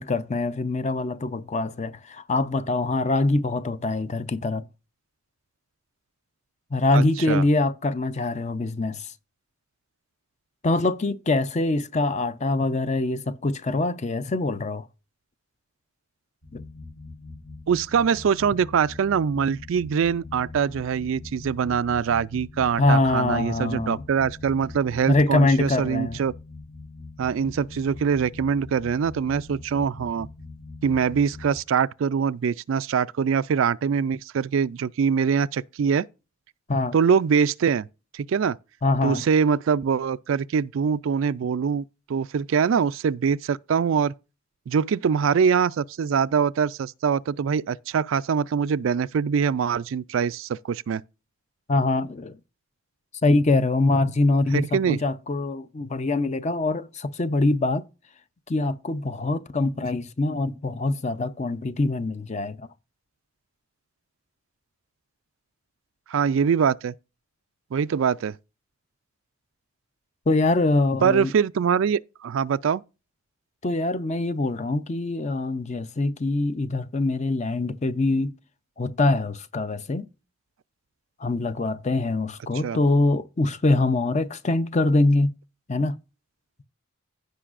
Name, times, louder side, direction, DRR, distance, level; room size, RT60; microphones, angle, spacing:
voice 1, 0.0-4.7 6.7-9.1 10.6-14.9 16.5-16.6 22.8-24.0 25.1-26.2 36.7-36.9 38.8-39.2 51.7-52.4 53.2-57.8 58.5-62.7 70.3-71.3 73.6-78.3 78.8-80.1 81.2-85.3 85.7-86.0, left 2 dB, 35° left, 0.5 m, -24 dB
voice 2, 6.9-7.4 17.7-26.3 27.2-30.3 30.8-36.0 36.9-37.8 38.1-38.6 39.0-41.8 42.1-44.1 44.7-51.0 54.5-55.0 66.1-66.9 67.7-68.4 71.0-72.8 82.6-82.8, right 6 dB, 70° right, 0.3 m, -23 dB
sound 1, 16.4-31.6, left 3 dB, 85° left, 4.8 m, -42 dB
16.0 x 5.4 x 2.5 m
head